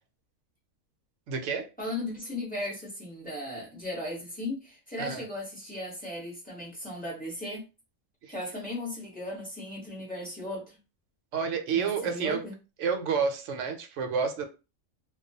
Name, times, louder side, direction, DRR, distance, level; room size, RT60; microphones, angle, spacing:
voice 1, 1.3-1.7 5.0-5.2 11.3-12.4 12.8-14.5, right 6 dB, 70° right, 0.8 m, -29 dB
voice 2, 1.8-7.6 8.3-10.8 11.7-12.5, left 1 dB, 10° left, 0.7 m, -36 dB
2.3 x 2.2 x 2.6 m
omnidirectional pair, 1.5 m